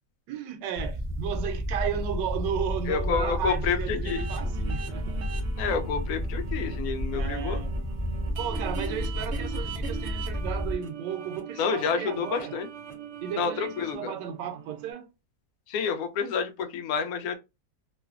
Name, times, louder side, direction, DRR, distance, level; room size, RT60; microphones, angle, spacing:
voice 1, 0.3-5.2 7.1-7.7 8.4-12.5 13.2-15.1, right 8 dB, 90° right, 1.2 m, -34 dB
sound 1, 0.8-10.7, equal, 25° left, 0.9 m, -31 dB
voice 2, 2.9-4.2 5.6-7.6 11.6-12.7 13.4-14.1 15.7-17.4, left 6 dB, 70° left, 0.9 m, -29 dB
sound 2, 4.1-14.9, right 6 dB, 65° right, 0.7 m, -41 dB
3.1 x 2.1 x 2.3 m
omnidirectional pair, 1.8 m